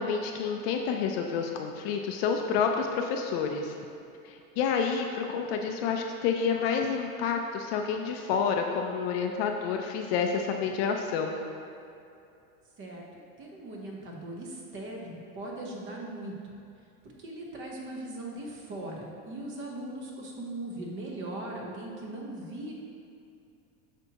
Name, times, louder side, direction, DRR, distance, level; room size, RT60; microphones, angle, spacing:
voice 1, 0.0-3.7 4.2-11.3, left 6 dB, 45° left, 3 dB, 0.5 m, -29 dB
voice 2, 13.4-16.4 17.2-22.7, right 1 dB, 30° right, -1 dB, 0.9 m, -39 dB
7.9 x 6.0 x 2.9 m, 2.6 s
supercardioid pair, 155°, 43 cm